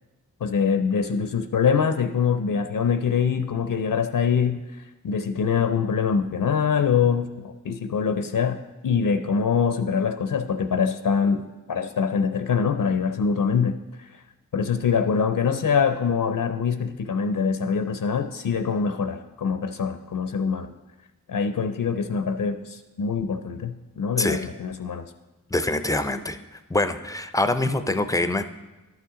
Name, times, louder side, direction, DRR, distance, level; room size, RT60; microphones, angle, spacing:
voice 1, 0.4-14.2 14.5-20.7 21.3-25.1, left 6 dB, 70° left, 8 dB, 0.5 m, -24 dB
voice 2, 25.5-26.4 26.7-28.4, left 2 dB, 10° left, 10 dB, 0.4 m, -24 dB
12.0 x 5.7 x 3.7 m, 1.1 s
wide cardioid pair, 55°, 34 cm